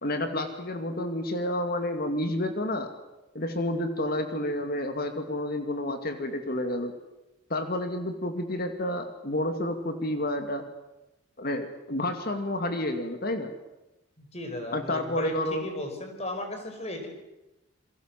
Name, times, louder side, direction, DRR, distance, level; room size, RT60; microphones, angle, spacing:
voice 1, 0.0-2.9 3.3-7.0 7.5-10.6 11.4-13.5 14.7-15.7, left 1 dB, 50° left, 6 dB, 2.5 m, -30 dB
voice 2, 14.2-17.1, left 1 dB, 30° left, 5 dB, 5.2 m, -36 dB
28.0 x 22.0 x 7.6 m, 0.97 s
head